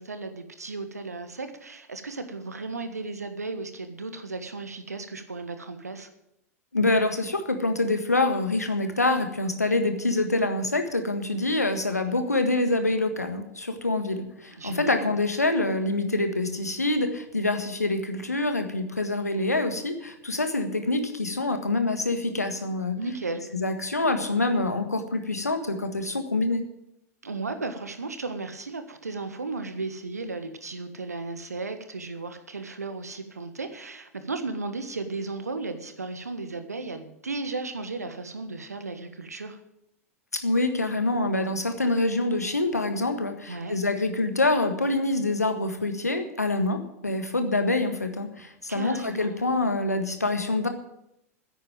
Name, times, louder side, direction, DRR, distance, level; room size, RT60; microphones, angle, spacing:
voice 1, 0.0-6.1 14.6-15.2 22.6-23.5 27.2-39.6 43.5-43.8 48.7-49.5, right 3 dB, 85° right, 9 dB, 1.5 m, -35 dB
voice 2, 6.7-23.0 23.5-26.6 40.3-50.7, left 2 dB, 90° left, 7 dB, 1.6 m, -26 dB
10.5 x 8.6 x 8.8 m, 0.81 s
figure-of-eight pair, 90°, 8 cm